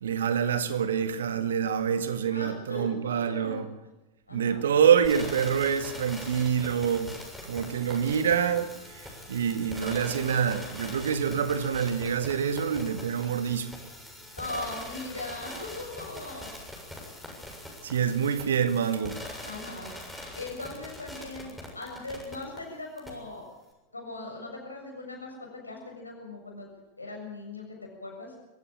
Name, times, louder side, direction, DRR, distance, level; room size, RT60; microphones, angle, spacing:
voice 1, 0.0-3.7 4.3-7.2 7.4-8.7 8.9-13.7 17.8-19.2, right 7 dB, 65° right, 2.0 m, -26 dB
voice 2, 2.3-3.6 4.3-4.6 14.4-16.5 18.0-18.1 19.4-19.9 20.3-23.5 23.9-26.7 27.0-27.7 28.0-28.4, left 2 dB, 80° left, 7.1 m, -39 dB
sound 1, 5.0-22.6 23.0-23.1, left 1 dB, ahead, 7.1 m, -42 dB
24.0 x 16.0 x 8.8 m
figure-of-eight pair, 90°, 0 cm